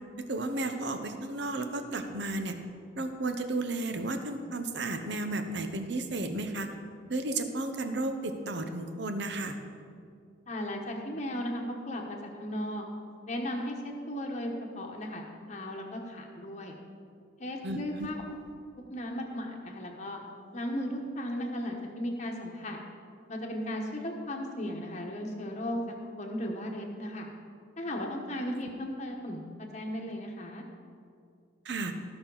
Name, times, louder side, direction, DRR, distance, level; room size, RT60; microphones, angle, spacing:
voice 1, 0.3-2.6 3.0-6.7 7.1-9.6 17.6-18.1 31.6-31.9, right 2 dB, 60° right, 7 dB, 0.8 m, -33 dB
voice 2, 10.5-12.8 13.3-14.5 14.7-16.8 17.4-18.2 18.9-20.2 20.5-22.8 23.3-27.3 27.8-30.6, equal, 35° left, 1 dB, 1.1 m, -36 dB
17.5 x 6.0 x 4.0 m, 2.4 s
head